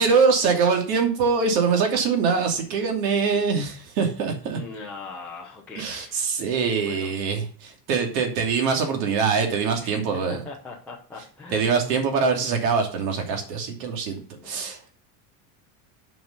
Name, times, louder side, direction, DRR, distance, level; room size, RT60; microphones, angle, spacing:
voice 1, 0.0-4.6 5.7-10.5 11.5-15.0, right 5 dB, 85° right, 3 dB, 2.9 m, -23 dB
voice 2, 4.5-6.2 6.9-7.1 9.8-10.0 10.3-11.7 14.3-14.7, left 4 dB, 5° left, -6 dB, 0.3 m, -40 dB
7.9 x 5.3 x 6.6 m, 0.41 s
cardioid pair, 175°, 49 cm